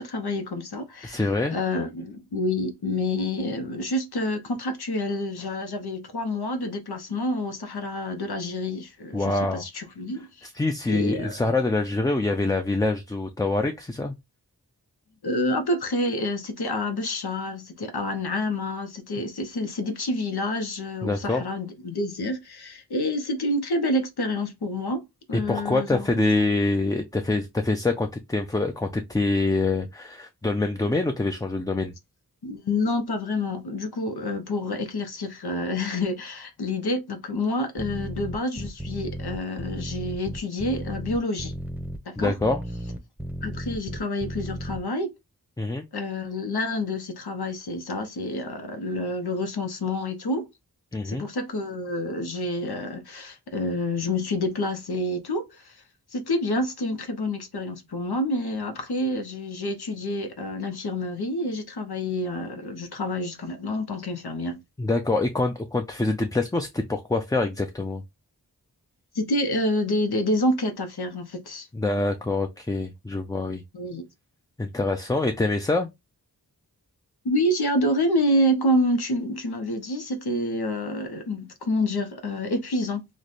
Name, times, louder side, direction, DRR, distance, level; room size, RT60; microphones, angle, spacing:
voice 1, 0.0-10.5 10.9-11.4 15.2-25.0 25.3-26.1 32.4-41.5 42.1-42.3 43.4-45.1 45.9-50.5 51.0-55.8 56.1-64.6 69.1-71.7 73.7-74.0 77.2-83.0, left 1 dB, 85° left, 0.8 m, -28 dB
voice 2, 1.0-1.6 9.1-9.6 10.4-14.1 21.0-21.4 25.3-31.9 42.2-42.6 45.6-45.9 50.9-51.3 64.8-68.0 71.7-73.6 74.6-75.9, left 2 dB, 10° left, 0.4 m, -25 dB
sound 1, 37.8-44.8, right 1 dB, 5° right, 0.7 m, -34 dB
3.2 x 2.2 x 4.0 m
wide cardioid pair, 65°, 37 cm